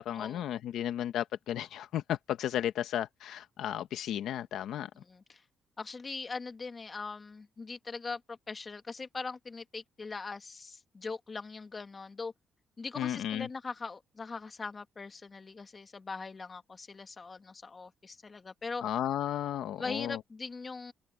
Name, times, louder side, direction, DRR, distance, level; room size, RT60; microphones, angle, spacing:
voice 1, 0.0-4.9 13.0-13.5 18.8-20.2, left 11 dB, 80° left, 1.0 m, -34 dB
voice 2, 4.9-5.4 5.8-12.3 12.8-18.8 19.8-20.9, left 4 dB, 30° left, 2.1 m, -41 dB
open air
cardioid pair, 90°, 0 cm